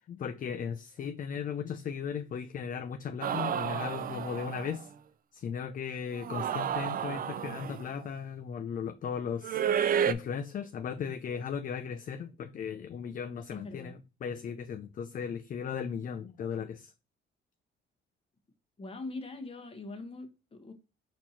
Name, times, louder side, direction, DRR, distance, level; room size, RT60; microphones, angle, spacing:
voice 1, 0.1-4.9 5.3-9.6 10.1-16.9, left 7 dB, 45° left, 0.4 m, -37 dB
sound 1, 3.2-4.8 6.1-7.9 9.4-10.1, right 9 dB, 45° right, 0.4 m, -31 dB
voice 2, 13.5-13.9 18.8-20.7, left 2 dB, 30° left, 1.2 m, -42 dB
4.4 x 2.9 x 4.1 m
cardioid pair, 90°, 20 cm